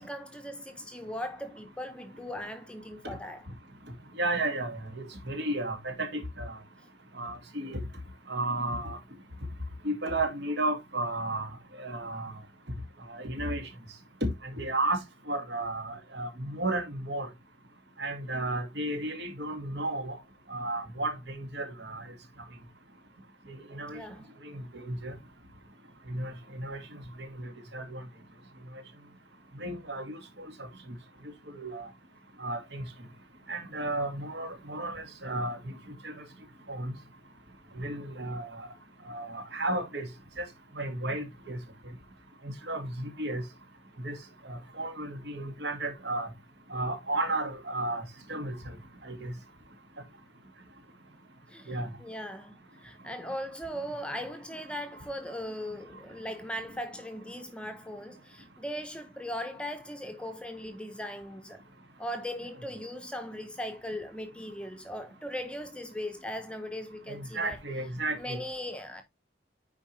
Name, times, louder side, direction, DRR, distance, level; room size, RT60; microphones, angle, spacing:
voice 1, 0.0-3.4 23.9-24.3 51.5-61.6 62.0-67.6 68.1-69.0, equal, 5° left, 0.8 m, -39 dB
voice 2, 4.2-6.6 7.2-7.8 8.3-9.0 9.8-11.5 11.8-12.3 13.1-13.6 14.2-15.0 15.3-17.3 18.0-20.1 20.5-22.1 23.5-24.0 24.5-25.1 26.1-26.8 27.2-28.0 29.6-30.2 31.5-31.9 32.4-32.8 33.5-35.7 36.0-36.1 36.7-36.9 37.8-38.7 39.1-40.1 40.4-40.5 40.8-41.6 42.4-43.4 44.0-44.2 44.5-46.3 46.7-48.0 48.3-48.6 49.0-49.3 51.7-51.9 67.1-68.4, right 2 dB, 60° right, 2.2 m, -33 dB
9.6 x 4.7 x 3.2 m
head